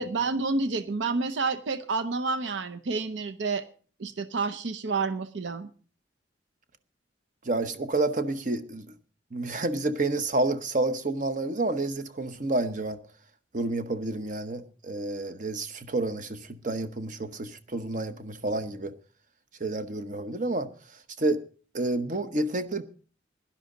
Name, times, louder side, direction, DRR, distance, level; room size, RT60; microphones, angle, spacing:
voice 1, 0.0-3.6 4.0-5.7, right 4 dB, 80° right, 0.7 m, -29 dB
voice 2, 7.4-8.9 9.3-13.0 13.5-18.9 19.6-20.7 21.2-21.4 21.7-22.8, right 2 dB, 45° right, 0.9 m, -29 dB
16.5 x 11.5 x 3.9 m
head